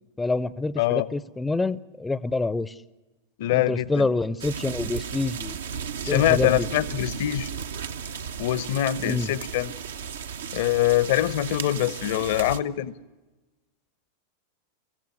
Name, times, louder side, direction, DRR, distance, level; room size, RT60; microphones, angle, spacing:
voice 1, 0.2-2.8 3.5-5.6 6.1-6.7 9.0-9.3, left 3 dB, 10° left, 19 dB, 0.6 m, -27 dB
voice 2, 3.4-4.1 6.0-7.5 8.4-9.7 10.5-12.9, left 14 dB, 55° left, 20 dB, 0.8 m, -24 dB
sound 1, 4.4-12.6, right 7 dB, 65° right, 0.9 m, -34 dB
24.0 x 15.5 x 9.4 m, 1.2 s
figure-of-eight pair, 90°, 0 cm